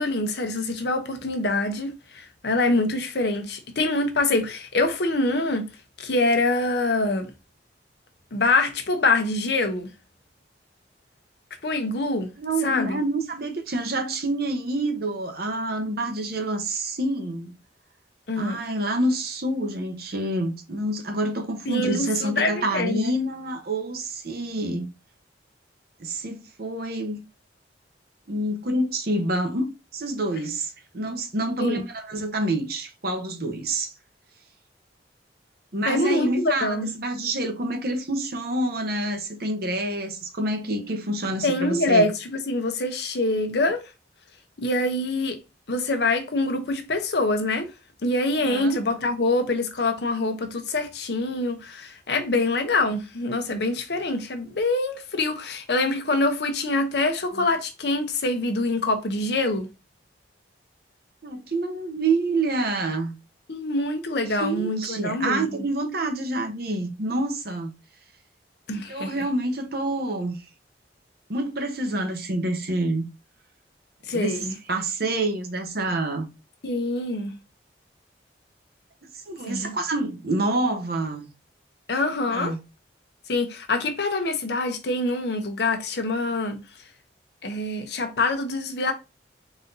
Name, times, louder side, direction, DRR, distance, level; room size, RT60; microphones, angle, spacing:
voice 1, 0.0-5.7 6.0-7.3 8.3-9.9 11.6-12.3 12.6-13.0 18.3-18.6 21.7-23.1 31.6-31.8 35.9-36.9 41.4-43.8 44.6-45.4 45.7-47.7 48.0-59.7 63.5-65.5 68.7-69.1 74.1-74.5 76.6-77.4 79.4-79.7 81.9-82.5 83.3-86.6 87.4-88.9, left 2 dB, 65° left, 0.8 m, -25 dB
voice 2, 12.4-17.5 18.4-24.9 26.0-27.2 28.3-29.6 29.9-33.9 35.7-42.1 48.4-48.8 61.2-63.1 64.3-67.7 68.9-70.4 71.3-73.1 74.1-76.3 79.3-81.3 82.3-82.6, right 2 dB, 60° right, 0.9 m, -27 dB
4.1 x 2.7 x 3.9 m
head